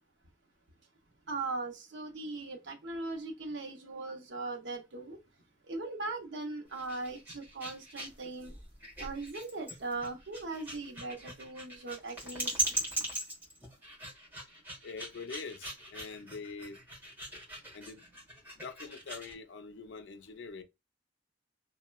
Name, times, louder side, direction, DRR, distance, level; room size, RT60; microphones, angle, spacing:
voice 1, 1.3-5.2 5.7-8.5 9.0-12.5, right 3 dB, 85° right, 0.7 m, -39 dB
sound 1, 6.7-19.4, right 2 dB, 10° right, 1.1 m, -40 dB
voice 2, 14.8-16.8 17.7-18.0 18.6-20.6, left 4 dB, 90° left, 0.4 m, -44 dB
3.0 x 2.1 x 2.2 m
head